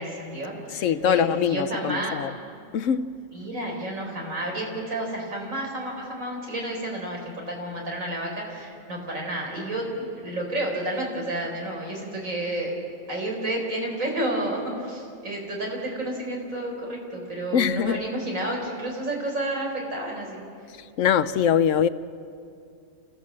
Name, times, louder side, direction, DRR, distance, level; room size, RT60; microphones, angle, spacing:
voice 1, 0.0-2.1 3.3-12.7 13.1-20.4, right 1 dB, 85° right, 4.8 m, -31 dB
voice 2, 0.7-2.3 2.7-3.2 17.5-18.0 21.0-21.9, left 8 dB, 75° left, 1.0 m, -23 dB
28.5 x 15.5 x 7.6 m
omnidirectional pair, 1.4 m